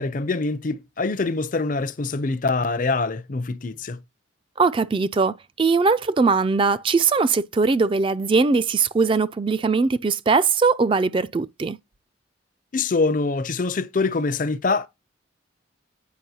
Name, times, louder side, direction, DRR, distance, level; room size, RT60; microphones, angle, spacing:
voice 1, 0.0-4.0 12.7-14.9, left 3 dB, 45° left, 0.5 m, -24 dB
voice 2, 4.6-11.8, right 4 dB, 25° right, 0.3 m, -20 dB
9.2 x 5.3 x 2.8 m
head